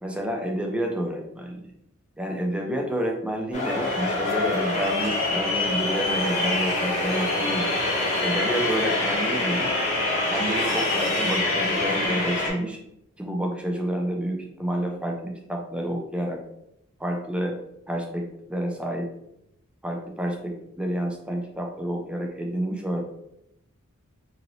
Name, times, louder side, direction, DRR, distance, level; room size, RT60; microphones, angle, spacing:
voice 1, 0.0-1.6 2.2-7.8 8.2-9.7 10.3-12.8 13.2-16.4 17.0-17.6 17.9-19.1 19.8-23.0, right 1 dB, 5° right, 1 dB, 0.4 m, -29 dB
sound 1, 3.5-12.5, left 2 dB, 30° left, 1.0 m, -25 dB
2.9 x 2.6 x 3.0 m, 0.80 s
head